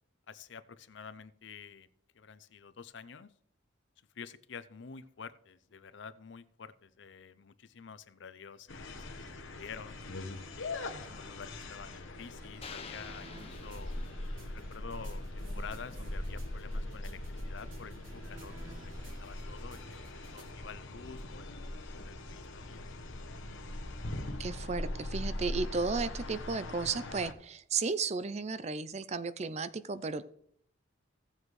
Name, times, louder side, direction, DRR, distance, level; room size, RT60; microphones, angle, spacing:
voice 1, 0.3-1.9 2.1-3.3 4.1-10.0 10.6-14.0 14.5-21.6 22.0-22.9, left 6 dB, 65° left, 15 dB, 0.6 m, -49 dB
sound 1, 8.7-27.3, left 1 dB, 85° left, 1.1 m, -41 dB
sound 2, 9.1-20.4, right 2 dB, 85° right, 2.3 m, -55 dB
sound 3, 12.6-14.8, left 6 dB, 30° left, 0.8 m, -49 dB
voice 2, 24.4-30.2, right 4 dB, 35° right, 15 dB, 0.4 m, -34 dB
16.5 x 7.4 x 3.2 m, 0.68 s
head